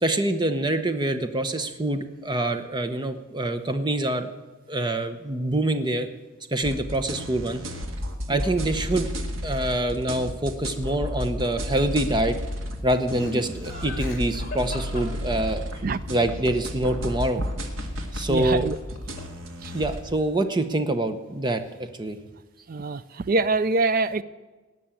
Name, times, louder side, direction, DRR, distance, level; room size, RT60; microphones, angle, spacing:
voice 1, 0.0-4.3 4.7-6.1 6.5-7.6 8.3-9.1 9.4-12.4 12.8-15.6 16.1-17.4 18.1-18.6 19.7-22.2, right 1 dB, 20° right, 9 dB, 0.9 m, -25 dB
sound 1, 6.6-20.0, equal, 80° right, 1.7 m, -32 dB
Laughter, 13.1-15.8 18.6-19.4 19.7-20.2, left 1 dB, 40° left, 2.8 m, -40 dB
voice 2, 18.3-18.8 19.6-19.7 22.7-24.2, right 3 dB, 45° right, 15 dB, 0.4 m, -24 dB
18.0 x 6.3 x 8.9 m, 1.3 s
head